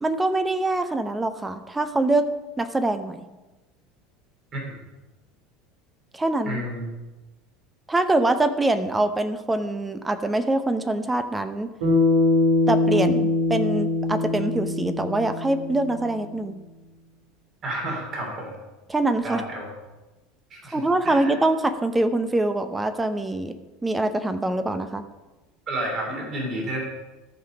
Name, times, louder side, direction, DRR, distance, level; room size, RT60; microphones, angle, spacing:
voice 1, 0.0-2.2 2.6-3.3 6.1-6.6 7.9-11.7 12.7-16.6 18.9-19.4 20.7-23.5 23.8-25.0, right 2 dB, 15° right, 10 dB, 0.7 m, -24 dB
voice 2, 6.4-6.9 17.6-18.5 19.2-19.7 20.5-20.8 21.0-21.3 25.7-26.8, right 1 dB, 35° right, -1 dB, 3.2 m, -30 dB
Bass guitar, 11.8-16.2, left 2 dB, 65° right, 3.5 m, -23 dB
13.5 x 5.7 x 5.2 m, 1.1 s
figure-of-eight pair, 70°, 0 cm